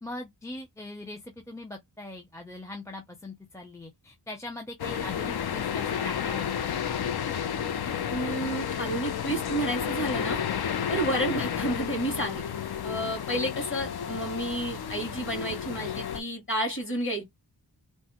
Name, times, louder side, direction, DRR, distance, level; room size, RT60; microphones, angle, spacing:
voice 1, 0.0-6.5, left 2 dB, 5° left, 0.5 m, -41 dB
sound 1, 4.8-16.2, left 8 dB, 65° left, 0.5 m, -31 dB
voice 2, 8.1-10.4 10.9-12.4 12.8-17.2, right 1 dB, 30° left, 2.0 m, -31 dB
3.2 x 2.0 x 2.9 m
wide cardioid pair, 85°, 42 cm